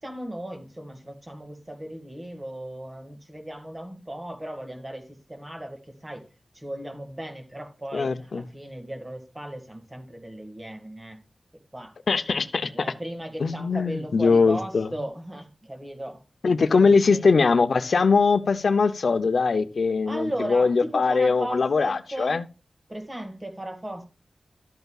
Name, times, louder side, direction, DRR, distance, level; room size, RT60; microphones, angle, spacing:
voice 1, 0.0-6.3 6.5-11.2 11.7-11.9 12.7-16.2 16.7-17.4 20.1-22.4 22.9-24.0, right 1 dB, 25° right, 1.9 m, -36 dB
voice 2, 7.9-8.4 12.1-12.7 13.4-14.9 16.4-22.5, left 4 dB, 85° left, 0.6 m, -21 dB
12.5 x 8.0 x 2.3 m
wide cardioid pair, 80°, 0 cm